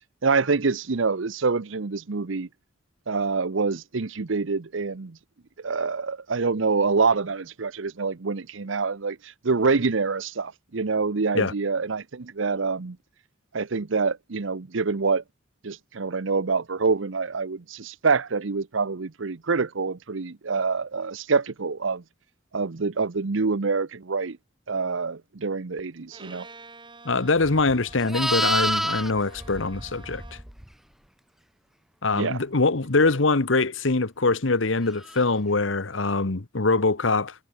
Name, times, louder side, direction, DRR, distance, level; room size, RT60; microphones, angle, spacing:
voice 1, 0.2-2.5 3.1-5.2 5.6-9.2 9.4-13.0 13.5-15.2 15.6-22.0 22.5-24.4 24.7-26.5 32.1-32.4, right 4 dB, 80° right, 0.8 m, -26 dB
Bowed string instrument, 26.1-30.6, right 3 dB, 25° right, 5.1 m, -49 dB
voice 2, 27.0-30.2 32.0-37.3, left 3 dB, 80° left, 1.3 m, -23 dB
Livestock farm animals working animals, 27.4-30.7 35.0-35.3, equal, ahead, 0.6 m, -28 dB
head